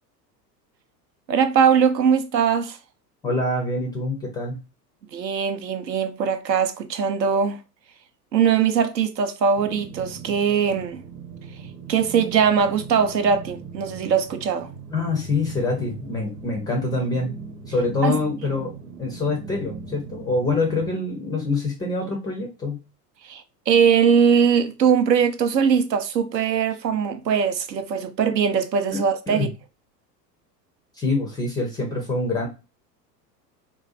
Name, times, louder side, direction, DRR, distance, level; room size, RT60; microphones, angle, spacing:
voice 1, 1.3-2.8 5.1-7.6 8.3-11.0 11.9-14.7 18.0-18.2 23.3-29.5, right 7 dB, 85° right, 0.6 m, -21 dB
voice 2, 3.2-4.6 14.9-17.3 17.7-18.7 19.0-22.8 28.9-29.0 29.3-29.5 31.0-32.5, left 3 dB, 10° left, 0.3 m, -25 dB
sound 1, 9.6-20.9, right 5 dB, 55° right, 0.9 m, -39 dB
3.7 x 2.3 x 2.4 m
figure-of-eight pair, 80°, 49 cm